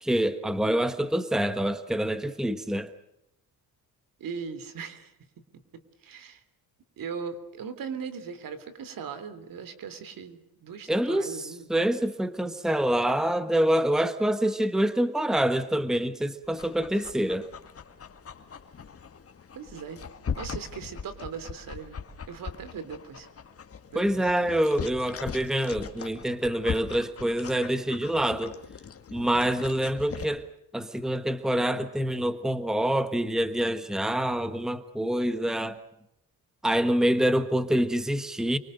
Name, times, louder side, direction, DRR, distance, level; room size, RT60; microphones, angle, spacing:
voice 1, 0.0-2.9 10.9-17.5 23.9-28.5 29.1-30.4 30.7-35.8 36.6-38.6, right 1 dB, ahead, 11 dB, 1.3 m, -26 dB
voice 2, 4.2-5.1 5.7-6.4 7.0-11.7 19.5-20.0 20.3-22.0 22.3-23.3 23.9-24.3, right 6 dB, 65° right, 12 dB, 3.4 m, -39 dB
Dog, 16.4-30.2, left 6 dB, 40° left, 2.1 m, -40 dB
29.0 x 24.5 x 6.6 m, 0.82 s
cardioid pair, 120°, 37 cm